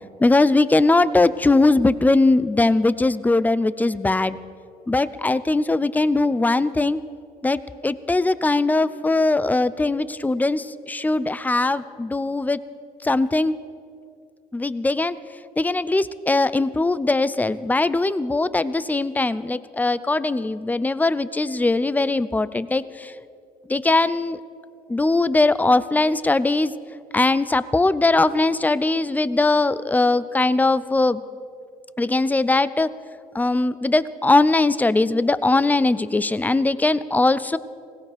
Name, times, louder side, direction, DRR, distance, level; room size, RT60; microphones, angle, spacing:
voice 1, 0.2-4.4 4.9-7.0 7.4-12.6 13.0-13.5 14.5-15.2 15.6-23.1 23.7-24.4 24.9-26.7 27.1-31.2 32.0-32.9 33.3-37.6, left 2 dB, 10° left, 16 dB, 0.4 m, -20 dB
21.0 x 17.5 x 3.4 m, 2.4 s
cardioid pair, 110°, 17 cm